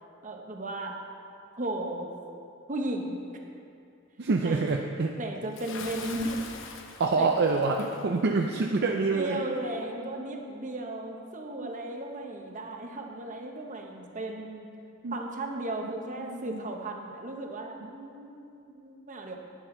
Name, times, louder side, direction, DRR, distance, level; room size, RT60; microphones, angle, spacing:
voice 1, 0.2-1.0 1.6-2.1 2.7-3.2 4.4-4.6 5.2-6.4 7.1-7.3 9.1-14.7 15.1-19.4, right 1 dB, 40° right, 2 dB, 1.0 m, -35 dB
voice 2, 4.2-5.2 7.0-9.4 11.6-11.7 15.0-15.1 16.2-16.6, right 3 dB, 55° right, 2 dB, 0.5 m, -26 dB
Bathtub (filling or washing) / Splash splatter, 5.5-8.1, left 4 dB, 65° left, 0.8 m, -43 dB
10.5 x 9.9 x 3.9 m, 2.5 s
head